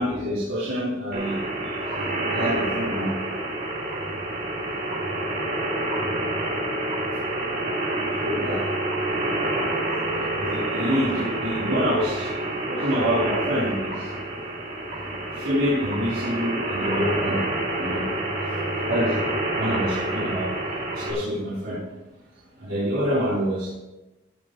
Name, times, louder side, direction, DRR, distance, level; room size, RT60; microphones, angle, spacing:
voice 1, 0.0-1.4 2.2-3.1 8.2-8.6 10.1-12.3 12.7-14.1 15.4-17.4 17.8-18.0 18.5-18.6 18.9-20.5 20.9-21.8 22.6-23.7, equal, 80° right, -10 dB, 4.2 m, -26 dB
sound 1, 1.1-21.1, right 1 dB, 45° right, 3.3 m, -28 dB
17.0 x 8.7 x 3.2 m, 1.0 s
head